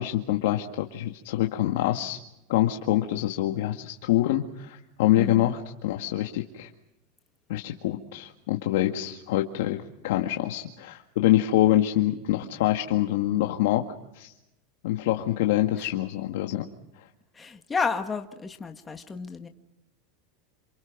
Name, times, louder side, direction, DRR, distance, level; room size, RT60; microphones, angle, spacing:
voice 1, 0.0-2.2 2.5-6.7 7.5-13.9 14.1-14.3 14.8-16.7, left 14 dB, 70° left, 3 dB, 1.9 m, -25 dB
voice 2, 5.2-5.5 15.8-15.9 17.3-19.5, left 5 dB, 15° left, 6 dB, 1.6 m, -31 dB
28.0 x 27.5 x 6.0 m, 0.89 s
supercardioid pair, 160°, 0 cm